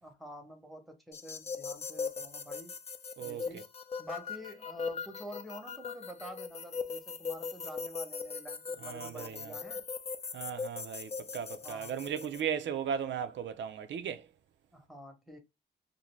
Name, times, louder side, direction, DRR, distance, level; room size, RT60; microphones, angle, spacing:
voice 1, 0.0-2.8 3.2-3.7 4.0-9.8 11.6-12.0 14.7-15.4, equal, ahead, 0.8 m, -48 dB
sound 1, 1.1-12.4, left 5 dB, 35° left, 0.4 m, -40 dB
voice 2, 8.8-9.5 10.3-14.3, right 8 dB, 90° right, 0.4 m, -36 dB
2.6 x 2.6 x 3.1 m
wide cardioid pair, 105°, 19 cm